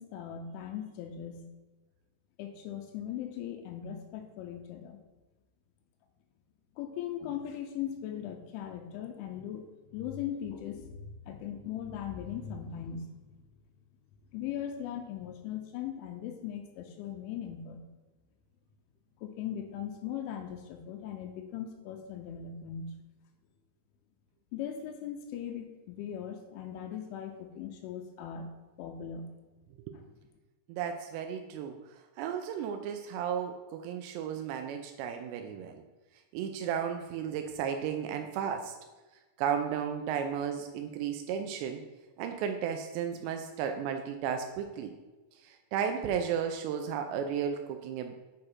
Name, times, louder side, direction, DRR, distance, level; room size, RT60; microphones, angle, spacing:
voice 1, 0.0-1.5 2.4-5.0 6.8-13.4 14.3-17.9 19.2-23.0 24.5-28.5 28.8-29.3 29.9-30.1, left 9 dB, 85° left, 5 dB, 3.0 m, -39 dB
voice 2, 30.7-31.8 32.2-35.8 36.3-38.8 39.4-41.8 42.2-44.9 45.4-48.1, right 8 dB, 85° right, 5 dB, 2.5 m, -34 dB
8.7 x 5.1 x 4.3 m, 1.2 s
omnidirectional pair, 5.5 m